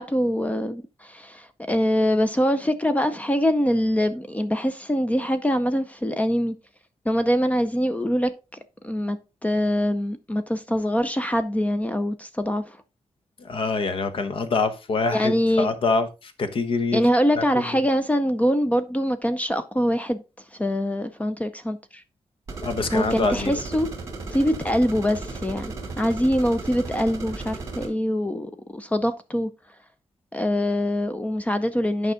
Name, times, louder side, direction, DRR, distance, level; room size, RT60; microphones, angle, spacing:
voice 1, 0.0-6.5 7.1-8.3 8.8-12.8 15.1-15.7 16.9-20.2 20.5-22.0 22.9-23.9 24.3-29.5 30.3-32.1, equal, 10° left, 0.6 m, -24 dB
voice 2, 13.4-17.1 17.4-17.8 22.6-23.6, left 4 dB, 55° left, 1.1 m, -25 dB
sound 1, 22.5-27.9, right 3 dB, 30° right, 2.5 m, -35 dB
9.3 x 5.4 x 3.7 m
wide cardioid pair, 160°, 11 cm